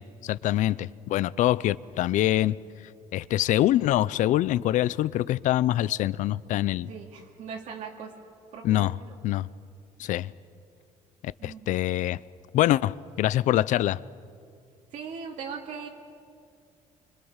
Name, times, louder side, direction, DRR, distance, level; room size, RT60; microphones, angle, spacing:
voice 1, 0.0-2.6 3.1-6.9 8.6-8.9 9.2-9.5 10.0-10.3 11.2-12.2 12.5-14.0, left 14 dB, 65° left, 0.6 m, -24 dB
voice 2, 6.9-8.1 8.5-9.2 11.4-11.7 14.9-15.9, right 6 dB, 60° right, 2.5 m, -39 dB
29.0 x 25.0 x 7.3 m
cardioid pair, 170°, 14 cm